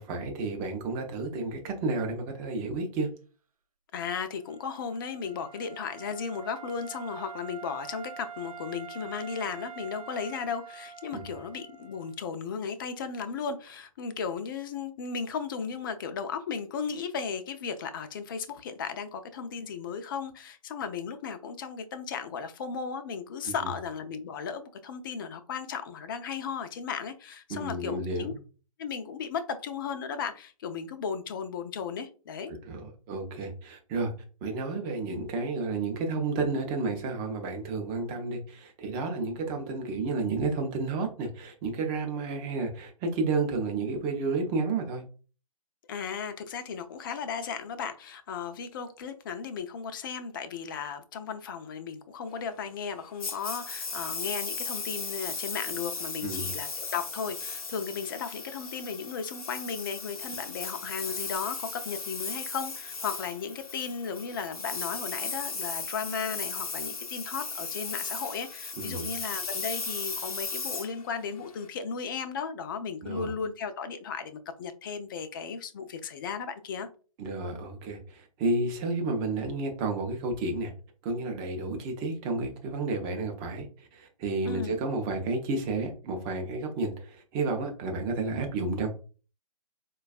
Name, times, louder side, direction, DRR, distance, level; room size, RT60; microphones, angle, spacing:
voice 1, 0.0-3.1 11.1-11.2 23.4-23.7 27.5-28.4 32.5-34.1 34.4-45.0 56.2-56.5 68.8-69.1 73.0-73.3 77.2-80.7 81.0-88.9, right 3 dB, 20° right, 0.5 m, -31 dB
voice 2, 3.9-28.3 28.8-32.5 45.9-76.9 84.4-84.8, left 6 dB, 35° left, 0.4 m, -35 dB
Wind instrument woodwind instrument, 4.4-12.2, right 7 dB, 75° right, 0.5 m, -45 dB
Engine, 53.2-71.7, left 4 dB, 80° left, 0.7 m, -36 dB
4.4 x 2.3 x 2.4 m
figure-of-eight pair, 130°, 18 cm